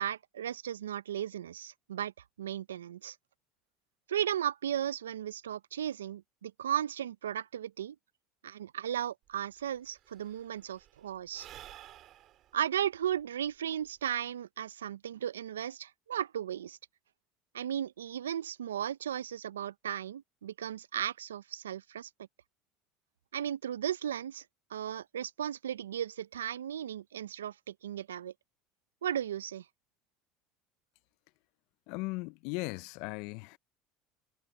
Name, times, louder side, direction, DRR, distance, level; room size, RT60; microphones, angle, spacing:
voice 1, 0.0-2.1 2.4-3.2 4.1-8.0 8.4-11.5 12.5-16.8 17.5-22.1 23.3-24.4 24.7-28.3 29.0-29.6, right 10 dB, 85° right, 0.7 m, -35 dB
Sigh / Breathing, 9.3-9.4 9.6-14.3, right 13 dB, 55° right, 6.3 m, -54 dB
voice 2, 31.9-33.6, left 25 dB, 65° left, 0.8 m, -37 dB
hypercardioid pair, 70°, 0 cm